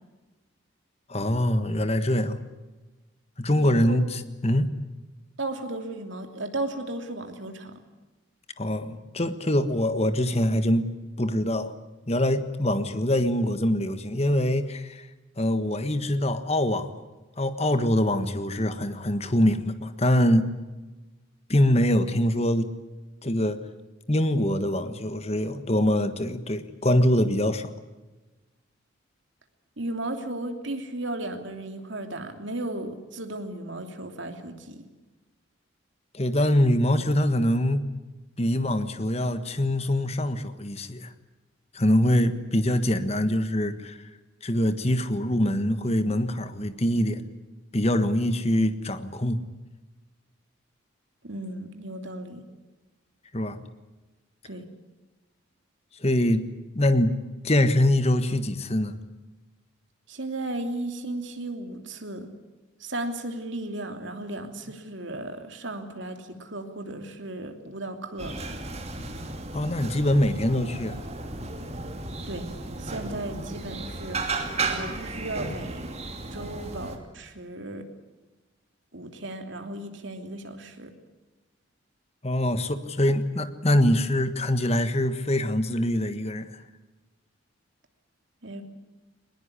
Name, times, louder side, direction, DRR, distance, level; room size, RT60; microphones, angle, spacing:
voice 1, 1.1-2.4 3.4-4.7 8.6-10.9 11.2-11.7 12.1-15.1 15.4-17.0 17.4-20.5 21.5-22.7 23.2-23.6 24.1-27.7 36.1-37.9 38.4-41.1 41.7-44.0 44.4-47.2 47.7-49.4 53.3-53.6 56.0-56.4 56.7-57.1 57.4-59.0 69.5-71.0 82.2-86.6, left 1 dB, 30° left, 10 dB, 1.5 m, -24 dB
voice 2, 3.5-4.0 5.4-7.7 29.8-34.8 38.5-38.6 51.2-52.4 54.5-54.7 60.1-62.3 62.8-68.3 72.3-72.5 72.8-75.9 76.3-77.8 78.9-80.9 88.4-88.6, right 1 dB, 60° right, 6 dB, 3.0 m, -35 dB
sound 1, 68.2-77.0, right 3 dB, 30° right, 2.6 m, -34 dB
21.0 x 20.5 x 9.9 m, 1.2 s
head